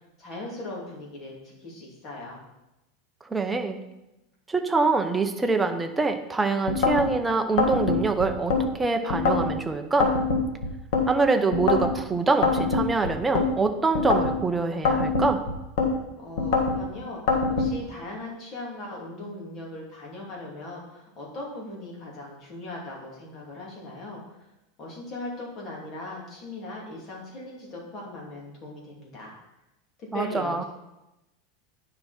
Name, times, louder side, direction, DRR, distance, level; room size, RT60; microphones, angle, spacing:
voice 1, 0.2-2.4 16.2-24.4 24.8-29.3 30.0-30.7, left 2 dB, 35° left, -3 dB, 3.0 m, -39 dB
voice 2, 3.2-3.8 4.5-10.1 11.1-15.4 30.1-30.6, right 3 dB, 10° right, 6 dB, 0.8 m, -25 dB
sound 1, 6.7-7.1 7.6-8.6 9.1-9.5 10.0-11.1 11.5-11.9 12.4-13.5 13.9-14.4 14.8-15.9 16.4-16.8 17.3-17.7, left 4 dB, 70° left, 1.6 m, -23 dB
9.7 x 5.9 x 4.4 m, 0.95 s
supercardioid pair, 140°, 0 cm